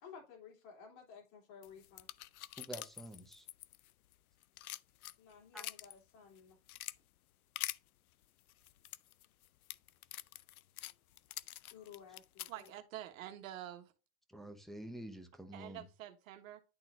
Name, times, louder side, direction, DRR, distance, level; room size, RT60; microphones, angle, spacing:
voice 1, 0.0-2.1 5.2-6.6 11.7-12.7, left 6 dB, 45° left, 2.8 m, -55 dB
sound 1, 1.6-4.1 4.4-5.9 6.4-7.0 7.6-7.8 8.5-12.7, left 14 dB, 90° left, 0.5 m, -45 dB
voice 2, 2.6-3.5 5.5-5.6 14.3-15.9, right 1 dB, ahead, 0.8 m, -48 dB
voice 3, 12.5-13.9 15.5-16.6, right 12 dB, 70° right, 1.4 m, -47 dB
11.0 x 4.1 x 2.5 m
hypercardioid pair, 130°, 42 cm